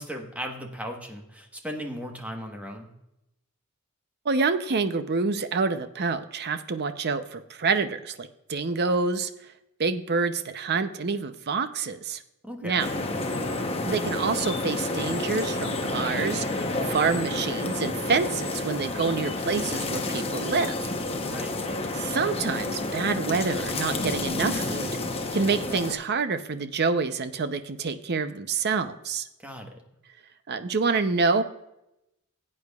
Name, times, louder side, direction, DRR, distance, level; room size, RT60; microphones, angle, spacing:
voice 1, 0.0-2.9 12.4-12.9 21.2-21.6 29.4-29.8, equal, 5° right, 2 dB, 1.2 m, -37 dB
voice 2, 4.2-9.3 9.8-12.2 12.6-12.9 13.9-20.9 21.9-24.9 25.3-29.2 30.5-31.4, right 4 dB, 50° right, 10 dB, 0.6 m, -27 dB
sound 1, 12.8-25.9, left 2 dB, 25° left, 0.9 m, -30 dB
16.5 x 8.6 x 2.4 m, 0.87 s
head